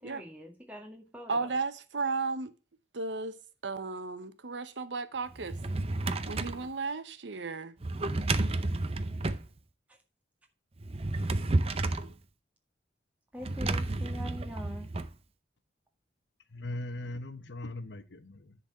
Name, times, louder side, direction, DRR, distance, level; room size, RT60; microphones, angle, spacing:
voice 1, 0.0-1.5 13.3-14.9, equal, 10° right, 1.9 m, -43 dB
voice 2, 1.3-2.5 2.9-3.3 3.6-5.6 6.3-7.7, right 4 dB, 85° right, 0.9 m, -34 dB
Drawer open or close, 5.3-6.7 7.8-9.5 10.8-12.1 13.4-15.1, right 2 dB, 35° right, 0.6 m, -31 dB
voice 3, 16.5-18.6, left 1 dB, 75° left, 0.9 m, -39 dB
10.5 x 4.2 x 7.0 m
head